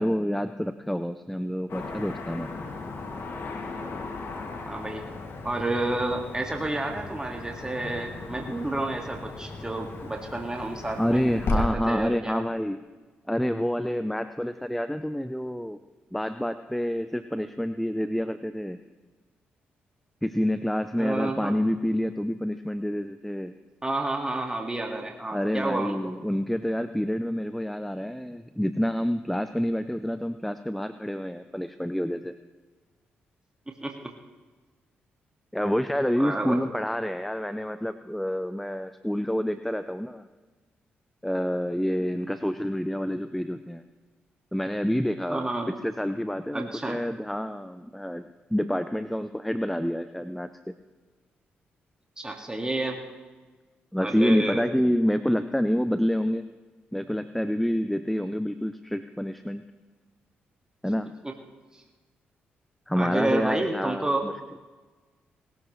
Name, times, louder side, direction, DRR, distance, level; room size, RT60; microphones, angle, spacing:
voice 1, 0.0-2.7 11.0-12.8 13.3-15.8 16.1-18.8 20.2-23.5 25.3-32.4 35.5-40.3 41.2-43.8 44.5-50.7 53.9-56.5 56.9-59.6 60.8-61.1 62.9-64.3, equal, 5° left, 11 dB, 0.6 m, -28 dB
Car passing by / Traffic noise roadway noise, 1.7-11.6, left 3 dB, 60° left, 2.3 m, -36 dB
voice 2, 4.6-5.1 5.4-12.4 21.0-21.6 23.8-26.1 33.7-34.1 36.2-36.6 45.3-45.7 46.5-47.0 52.2-53.0 54.0-54.6 61.2-61.3 61.7-61.8 63.0-64.3, right 2 dB, 15° right, 2 dB, 2.0 m, -30 dB
19.5 x 13.0 x 3.2 m, 1.3 s
hypercardioid pair, 45°, 5 cm